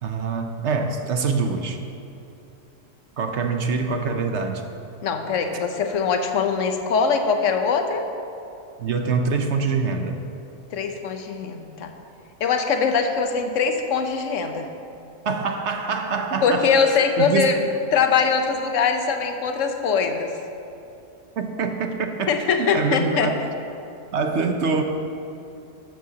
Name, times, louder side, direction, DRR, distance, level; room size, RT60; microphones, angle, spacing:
voice 1, 0.0-1.8 3.2-4.6 8.8-10.2 15.2-17.5 21.4-22.3 22.6-23.3 24.1-24.8, right 4 dB, 65° right, 5 dB, 1.1 m, -25 dB
voice 2, 5.0-8.0 10.7-11.9 12.4-14.7 16.4-17.6 17.9-20.3 22.3-23.3, left 5 dB, 70° left, 5 dB, 1.2 m, -22 dB
13.0 x 12.5 x 2.9 m, 2.7 s
omnidirectional pair, 1.3 m